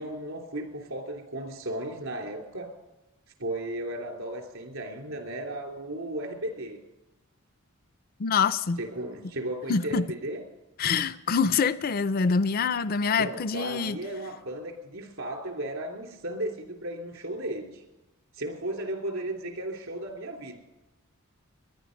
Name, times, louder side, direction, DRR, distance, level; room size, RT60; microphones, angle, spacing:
voice 1, 0.0-2.7 3.4-6.8 8.8-10.4 13.2-17.8 18.3-20.6, right 1 dB, 70° right, 3 dB, 3.1 m, -35 dB
voice 2, 8.2-8.8 9.7-10.1 10.8-14.0, left 5 dB, 40° left, 14 dB, 0.4 m, -25 dB
21.0 x 10.5 x 5.2 m, 1.0 s
head